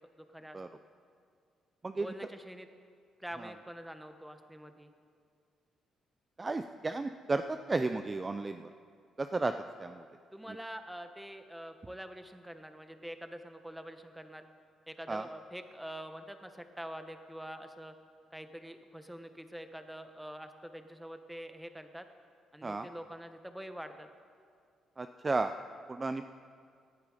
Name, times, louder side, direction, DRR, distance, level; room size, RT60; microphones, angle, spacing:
voice 1, 0.2-0.6 1.9-2.7 3.2-4.9 10.3-14.5 14.9-17.9 18.3-22.0 22.5-24.1, equal, 5° right, 7 dB, 1.1 m, -45 dB
voice 2, 6.4-8.7 9.2-9.5 9.8-10.0 10.5-10.6 15.1-15.2 22.6-22.9 25.0-25.5 25.9-26.3, right 3 dB, 25° right, 9 dB, 0.5 m, -33 dB
18.0 x 11.0 x 5.0 m, 2.2 s
cardioid pair, 90°, 0 cm